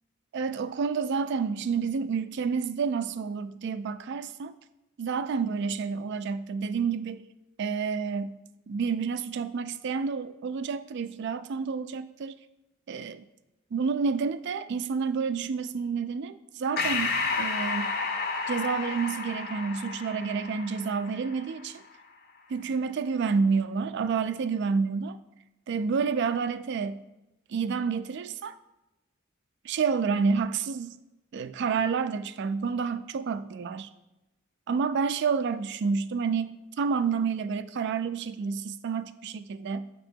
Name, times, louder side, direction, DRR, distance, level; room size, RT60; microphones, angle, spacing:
voice 1, 0.3-4.5 5.0-7.3 7.6-8.4 8.7-12.3 12.9-13.2 13.7-17.9 18.5-21.8 22.5-25.2 25.7-27.0 27.5-28.5 29.6-30.9 31.3-33.9 34.7-39.9, right 5 dB, 60° right, 13 dB, 0.3 m, -29 dB
Breathing, 16.8-21.6, left 4 dB, 50° left, 0.6 m, -31 dB
8.3 x 2.9 x 4.4 m, 0.99 s
head